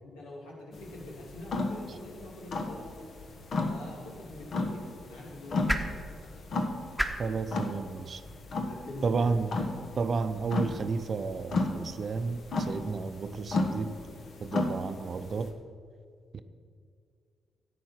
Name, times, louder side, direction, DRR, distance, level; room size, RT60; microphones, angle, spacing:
voice 1, 0.0-3.0 3.6-6.0 8.7-9.4, left 1 dB, 90° left, -2 dB, 2.4 m, -44 dB
sound 1, 0.7-15.5, left 2 dB, 60° left, 1.2 m, -35 dB
sound 2, 3.9-10.1, right 1 dB, ahead, 1.2 m, -39 dB
voice 2, 7.2-8.2 9.0-9.6 10.0-14.0 14.4-15.6 16.3-16.4, right 4 dB, 55° right, 11 dB, 0.6 m, -32 dB
11.0 x 8.2 x 5.9 m, 2.2 s
hypercardioid pair, 45°, 0 cm